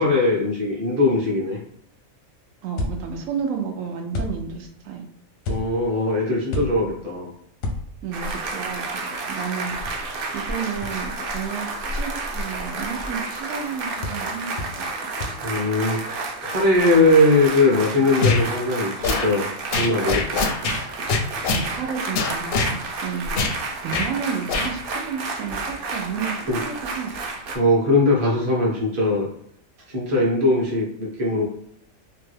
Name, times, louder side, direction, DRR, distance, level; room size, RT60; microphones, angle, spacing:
voice 1, 0.0-1.6 5.5-7.3 15.4-20.4 26.5-26.6 27.5-29.3 29.9-31.5, left 2 dB, 30° right, -2 dB, 0.8 m, -20 dB
voice 2, 2.6-5.0 6.8-7.0 8.0-9.8 10.3-14.9 21.5-23.3 23.5-27.1, right 6 dB, 80° right, 3 dB, 1.0 m, -31 dB
algunos bombos, 2.8-3.4 4.1-4.8 5.4-6.0 6.5-7.1 7.6-8.3 9.9-10.0 10.8-10.9 14.0-14.3 14.6-14.9 15.2-15.4, left 2 dB, 90° left, 1.1 m, -31 dB
sound 1, 8.1-27.6, right 3 dB, 65° right, 0.6 m, -31 dB
sound 2, 18.2-18.4 19.0-19.3 19.7-20.8 21.1-21.7 22.1-22.7 23.4-23.6 23.9-24.1 24.5-24.7, left 4 dB, 65° left, 0.6 m, -22 dB
2.9 x 2.2 x 3.2 m, 0.70 s
omnidirectional pair, 1.4 m